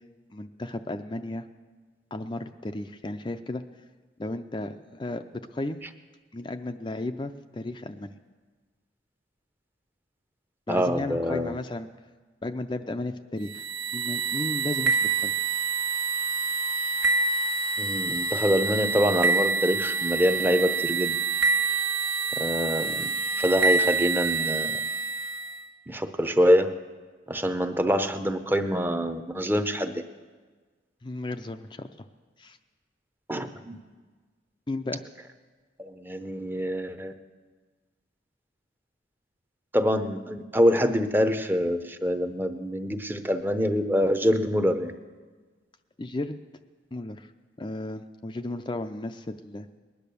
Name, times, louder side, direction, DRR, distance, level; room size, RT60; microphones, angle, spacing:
voice 1, 0.3-1.5 2.1-3.6 4.2-5.2 5.5-5.8 6.3-8.1 10.7-11.9 12.4-15.3 31.0-32.1 32.4-32.6 34.7-35.0 46.0-46.4 46.9-47.3 47.6-49.7, left 2 dB, 25° left, 7 dB, 0.5 m, -34 dB
voice 2, 10.7-11.6 17.8-21.2 22.4-24.7 25.9-26.7 27.3-29.9 33.3-33.8 35.8-37.1 39.7-44.9, equal, 10° right, 8 dB, 0.7 m, -25 dB
sound 1, 13.5-25.6, right 4 dB, 85° right, 1.4 m, -27 dB
20.0 x 10.5 x 6.9 m, 1.4 s
head